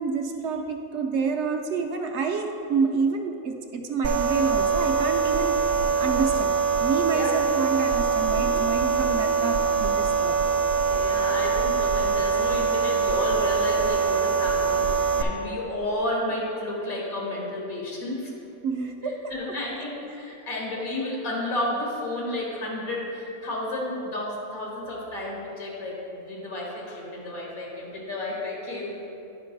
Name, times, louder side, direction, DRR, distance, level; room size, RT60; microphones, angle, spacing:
voice 1, 0.0-5.6 6.0-10.3 18.6-19.2 19.8-20.0, right 5 dB, 65° right, 4 dB, 0.8 m, -28 dB
sound 1, 4.0-15.2, right 5 dB, 85° right, 1.1 m, -23 dB
voice 2, 7.1-7.4 8.3-8.7 9.1-9.5 10.9-18.3 19.0-29.1, left 1 dB, 85° left, -3 dB, 1.9 m, -32 dB
11.0 x 5.1 x 3.9 m, 2.9 s
omnidirectional pair, 1.5 m